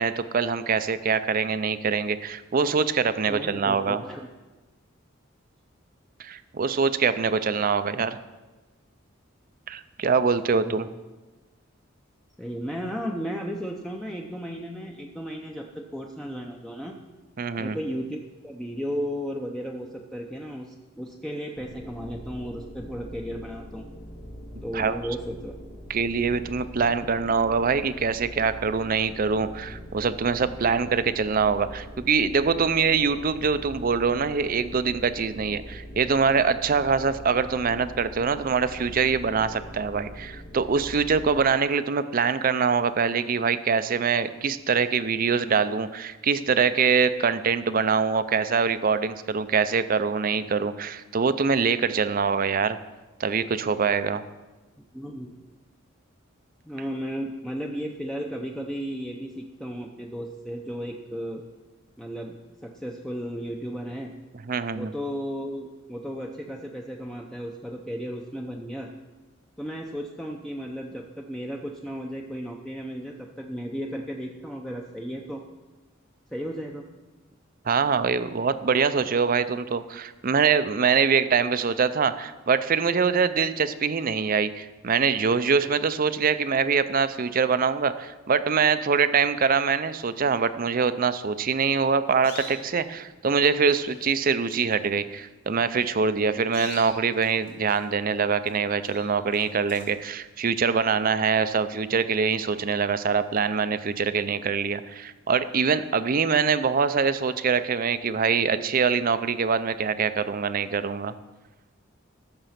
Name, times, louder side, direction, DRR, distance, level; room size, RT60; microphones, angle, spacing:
voice 1, 0.0-4.0 6.2-8.2 9.7-10.9 17.4-17.8 24.7-25.0 25.9-52.8 53.2-54.2 64.5-64.9 77.6-111.1, right 5 dB, 45° right, 13 dB, 0.5 m, -24 dB
voice 2, 3.3-4.3 10.5-10.9 12.4-17.0 17.6-23.8 24.6-25.6 54.8-55.3 56.7-61.4 62.0-64.1 64.7-68.9 69.6-75.4 76.3-76.9, equal, 5° left, 0 dB, 0.7 m, -34 dB
sound 1, 21.5-41.4, equal, 70° left, 2.0 m, -42 dB
sound 2, 91.8-92.8 93.5-93.6 93.8-94.2 94.4-94.7 95.6-95.8 96.3-98.0 98.4-98.6 98.8-100.0, left 3 dB, 50° left, 3.9 m, -44 dB
14.0 x 6.8 x 5.8 m, 1.2 s
head